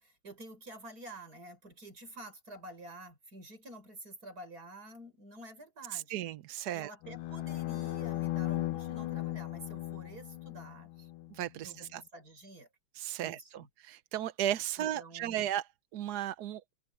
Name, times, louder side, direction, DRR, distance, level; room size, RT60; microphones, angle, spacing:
voice 1, 0.0-6.1 6.7-11.1 11.6-12.7 13.2-13.7 14.8-15.5, right 1 dB, 45° right, 6.6 m, -49 dB
voice 2, 5.9-6.9 11.3-12.0 12.9-15.7 15.9-16.6, right 11 dB, 65° right, 1.1 m, -35 dB
sound 1, 7.0-11.3, left 15 dB, 80° left, 1.6 m, -37 dB
open air
omnidirectional pair, 2.2 m